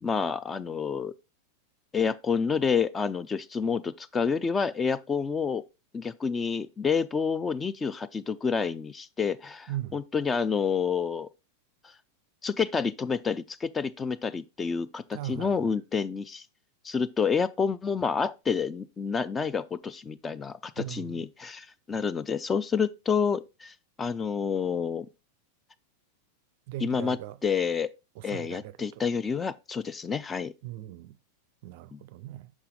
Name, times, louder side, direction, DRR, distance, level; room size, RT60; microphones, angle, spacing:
voice 1, 0.0-1.1 1.9-5.6 5.9-11.3 11.8-11.9 12.4-16.5 16.8-25.1 26.8-27.9 28.2-30.5 31.9-32.0, left 6 dB, 15° left, 0.3 m, -29 dB
voice 2, 15.1-15.6 20.8-21.2 26.7-27.4 28.2-29.0 30.6-31.2 31.6-32.5, right 14 dB, 50° right, 0.4 m, -38 dB
6.0 x 5.6 x 3.6 m
figure-of-eight pair, 90°, 0 cm